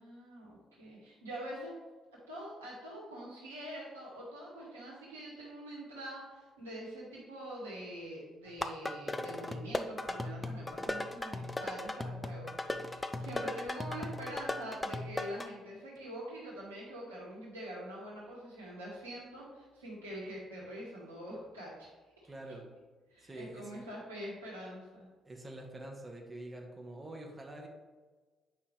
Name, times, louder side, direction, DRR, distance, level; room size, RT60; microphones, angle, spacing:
voice 1, 0.0-1.8 2.3-21.9 22.4-22.6 23.1-25.1, right 1 dB, 85° right, -5 dB, 1.8 m, -45 dB
sound 1, 8.5-15.5, left 2 dB, 20° left, 0.6 m, -37 dB
voice 2, 22.3-22.7 23.2-23.8 25.3-27.7, right 1 dB, 25° right, 1 dB, 1.5 m, -46 dB
8.5 x 5.4 x 3.3 m, 1.4 s
figure-of-eight pair, 45°, 0 cm